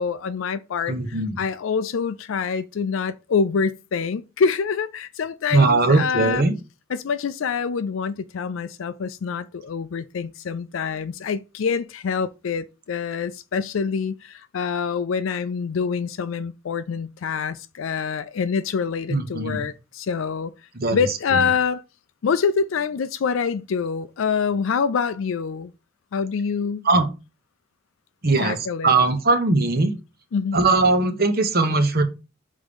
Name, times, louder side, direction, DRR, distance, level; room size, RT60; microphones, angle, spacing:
voice 1, 0.0-6.4 6.9-20.5 20.9-21.8 22.2-25.7 26.1-26.9 28.4-28.9 30.3-30.6, left 6 dB, 75° left, 0.4 m, -26 dB
voice 2, 0.9-1.4 5.5-6.5 19.1-19.7 20.7-21.0 21.3-21.5 26.8-27.1 28.2-29.9 30.5-32.0, right 3 dB, 50° right, 1.1 m, -20 dB
5.5 x 3.6 x 5.2 m
head